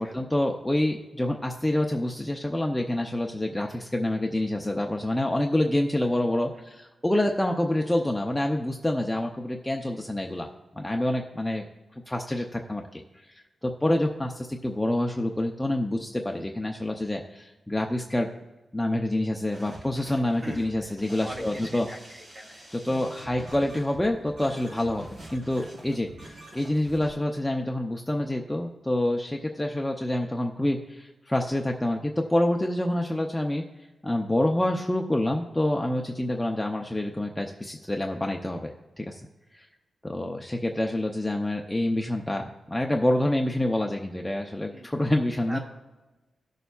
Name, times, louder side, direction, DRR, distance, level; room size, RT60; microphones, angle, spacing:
voice 1, 0.0-10.5 10.8-11.6 12.1-13.3 13.6-18.3 18.7-21.9 22.7-33.6 34.0-39.2 39.5-39.7 40.0-45.6, left 1 dB, 5° left, 2 dB, 0.5 m, -27 dB
sound 1, 19.5-27.1, right 1 dB, 80° right, 3.4 m, -46 dB
voice 2, 20.4-21.0 21.2-23.4 44.7-44.9 45.5-45.6, right 1 dB, 25° right, 1 dB, 1.8 m, -42 dB
18.0 x 6.7 x 2.3 m, 1.2 s
wide cardioid pair, 160°, 0 cm